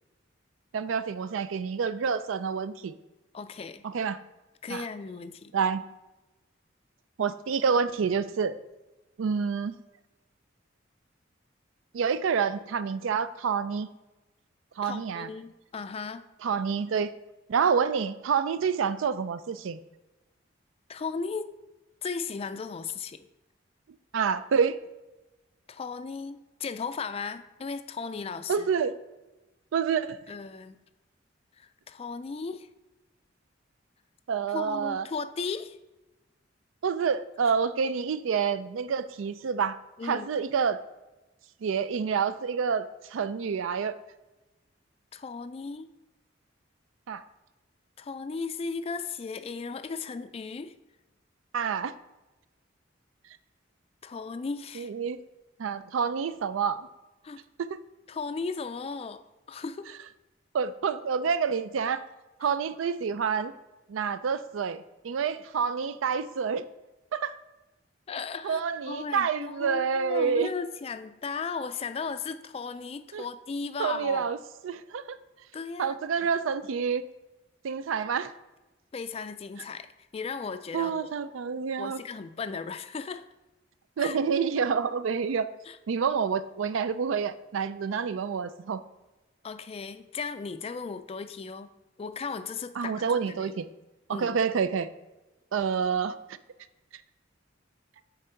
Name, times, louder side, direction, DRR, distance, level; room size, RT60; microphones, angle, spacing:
voice 1, 0.7-2.9 3.8-4.2 4.7-4.8 5.5-5.8 7.2-8.5 9.2-9.8 11.9-13.9 14.8-15.3 16.4-17.1 17.5-19.8 24.1-24.8 28.5-28.9 29.7-30.2 34.3-35.1 36.8-39.8 40.0-40.8 41.6-44.0 47.1-47.2 51.5-51.9 54.7-55.2 55.6-56.9 57.6-57.7 60.5-62.0 62.4-63.5 63.9-66.6 67.1-67.4 68.4-70.5 73.1-73.3 73.8-74.4 74.6-75.2 75.8-77.0 77.6-78.3 80.7-82.0 84.0-85.5 85.9-88.8 92.8-93.7 94.1-94.9 95.5-96.4, right 6 dB, 85° right, 14 dB, 0.4 m, -28 dB
voice 2, 3.3-3.8 4.6-5.5 14.8-16.2 20.9-21.5 22.0-23.3 25.7-28.7 30.3-30.8 31.6-32.7 34.5-35.8 40.0-40.3 45.1-45.9 48.0-50.7 54.0-54.9 57.2-57.4 58.1-59.2 59.5-59.9 62.4-62.5 68.1-74.3 75.5-76.0 78.9-81.1 81.8-83.3 84.0-84.2 85.7-85.8 89.4-91.7 92.0-93.5 94.1-94.3, left 5 dB, 30° left, 11 dB, 0.3 m, -36 dB
8.8 x 3.7 x 4.4 m, 1.1 s
head